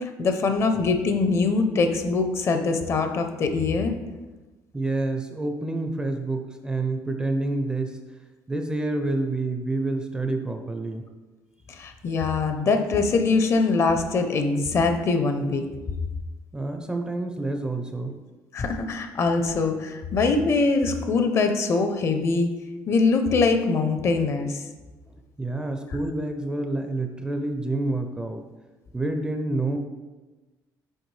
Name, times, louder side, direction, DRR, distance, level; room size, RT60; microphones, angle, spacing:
voice 1, 0.0-4.0 11.7-15.6 18.5-22.5 22.9-24.6, left 4 dB, 40° left, 7 dB, 0.5 m, -23 dB
voice 2, 4.7-8.0 8.5-11.0 16.5-18.2 25.1-28.4 28.9-29.8, right 2 dB, 10° right, 5 dB, 0.4 m, -28 dB
6.5 x 4.8 x 3.2 m, 1.2 s
cardioid pair, 145°, 7 cm